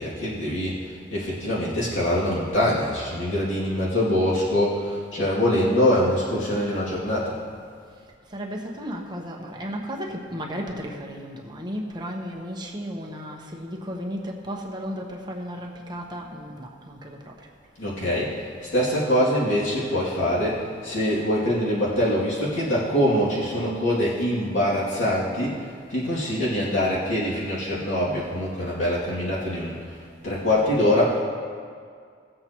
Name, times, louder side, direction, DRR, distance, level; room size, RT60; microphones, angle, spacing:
voice 1, 0.0-7.4 17.8-30.0 30.2-31.2, left 1 dB, 90° left, -8 dB, 2.6 m, -24 dB
voice 2, 7.9-17.5, equal, 20° right, -1 dB, 1.0 m, -34 dB
18.5 x 7.6 x 3.0 m, 2.1 s
head